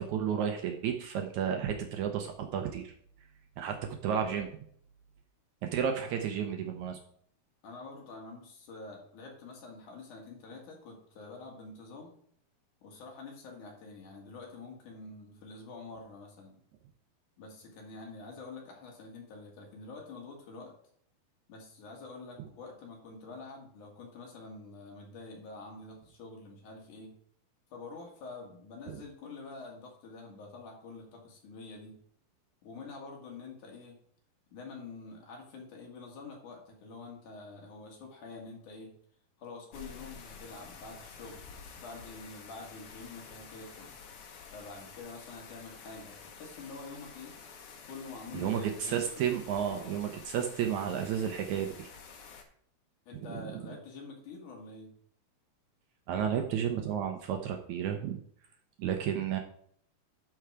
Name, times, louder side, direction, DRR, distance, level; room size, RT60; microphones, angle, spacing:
voice 1, 0.0-2.9 3.6-4.5 5.6-7.0 48.3-51.9 53.3-53.6 56.1-58.2 58.8-59.4, right 8 dB, 80° right, 4 dB, 1.7 m, -32 dB
voice 2, 7.6-12.1 12.8-16.6 17.4-20.7 21.5-27.2 27.7-32.0 32.6-34.0 34.5-38.9 39.4-44.0 44.5-47.4 47.8-49.3 49.7-50.0 53.1-54.9 56.2-56.4, left 3 dB, 60° left, 0 dB, 3.1 m, -47 dB
sound 1, 39.7-52.4, left 6 dB, 80° left, 1.2 m, -50 dB
11.5 x 4.6 x 4.9 m, 0.64 s
omnidirectional pair, 4.3 m